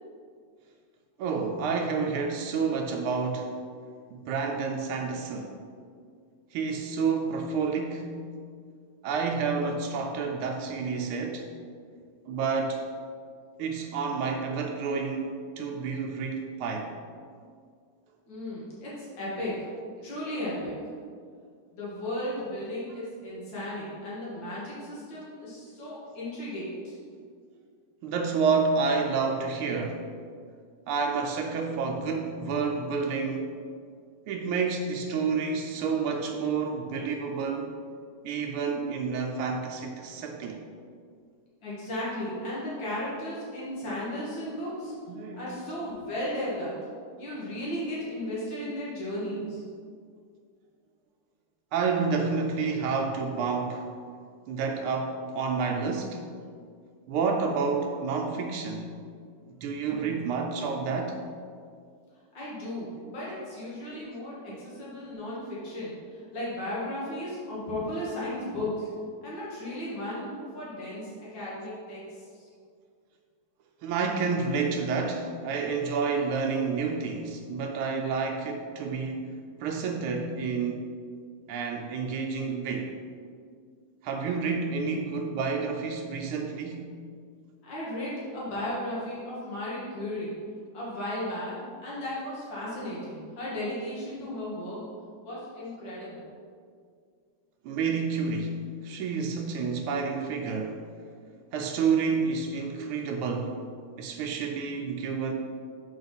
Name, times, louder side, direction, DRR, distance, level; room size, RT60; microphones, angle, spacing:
voice 1, 1.2-3.5 4.1-5.6 6.5-8.2 9.0-11.5 12.3-12.8 13.6-16.9 28.0-30.0 30.9-33.6 34.3-37.8 38.2-40.6 45.1-45.4 51.7-53.9 54.5-56.2 57.1-58.9 59.6-61.2 64.5-64.6 73.8-79.3 79.6-80.9 81.5-83.0 84.0-86.9 97.6-98.6 98.8-100.8 101.5-103.6 104.0-105.3, right 5 dB, 85° right, 2 dB, 1.5 m, -29 dB
voice 2, 18.3-19.7 20.0-20.8 21.7-27.0 41.6-44.9 45.3-46.7 47.2-49.6 62.3-68.9 69.2-72.2 87.6-90.3 90.7-94.8 95.2-96.3, left 1 dB, 60° left, -7 dB, 2.6 m, -35 dB
7.3 x 5.0 x 4.0 m, 2.1 s
omnidirectional pair, 2.4 m